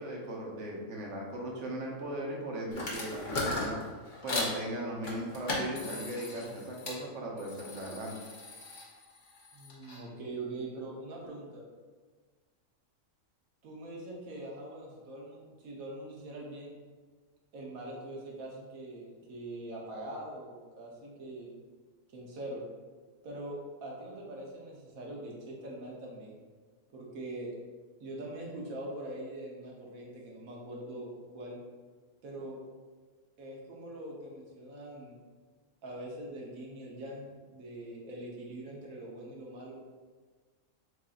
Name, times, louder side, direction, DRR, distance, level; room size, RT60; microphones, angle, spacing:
voice 1, 0.0-3.8 4.2-8.2, right 1 dB, 60° right, -2 dB, 1.2 m, -38 dB
sound 1, 2.7-4.6 5.0-7.0 7.4-10.0, left 2 dB, 40° left, 0.9 m, -37 dB
voice 2, 9.5-11.6 13.6-16.8 17.5-21.5 22.1-22.6 23.2-26.4 26.9-27.5 28.0-31.6 32.2-32.6 33.4-35.2 35.8-39.8, right 1 dB, 80° right, -2 dB, 1.4 m, -43 dB
7.5 x 2.6 x 2.4 m, 1.4 s
omnidirectional pair, 1.4 m